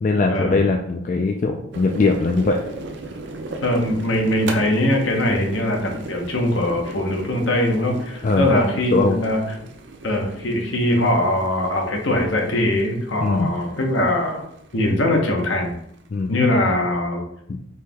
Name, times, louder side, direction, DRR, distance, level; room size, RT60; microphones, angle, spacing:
voice 1, 0.0-2.6 8.2-8.5 8.9-9.2 13.2-13.5 16.1-16.5 17.5-17.6, left 3 dB, 40° left, 2 dB, 0.3 m, -20 dB
sound 1, 1.7-16.2, right 2 dB, 60° right, 0.5 m, -37 dB
voice 2, 3.6-9.6 10.0-14.4 14.7-15.7 16.3-17.2, left 1 dB, 70° left, 2 dB, 1.0 m, -21 dB
4.6 x 2.9 x 3.5 m, 0.72 s
head